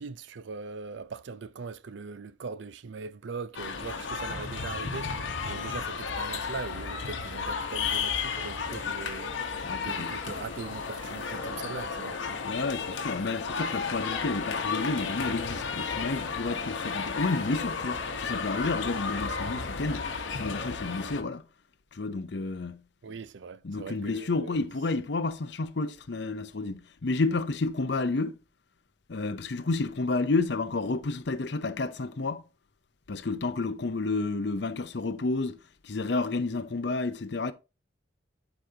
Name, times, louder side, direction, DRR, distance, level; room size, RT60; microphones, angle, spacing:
voice 1, 0.0-9.3 9.8-12.2 23.0-24.6, right 4 dB, 75° right, 0.5 m, -40 dB
sound 1, 3.5-21.2, left 5 dB, 85° left, 1.1 m, -33 dB
sound 2, 6.5-11.6, left 2 dB, 45° left, 3.0 m, -52 dB
voice 2, 9.6-10.1 12.4-20.1 20.3-21.4 21.9-22.8 23.6-28.3 29.1-32.4 33.1-35.6 35.8-37.5, left 3 dB, 65° left, 0.7 m, -30 dB
11.5 x 4.9 x 2.8 m
head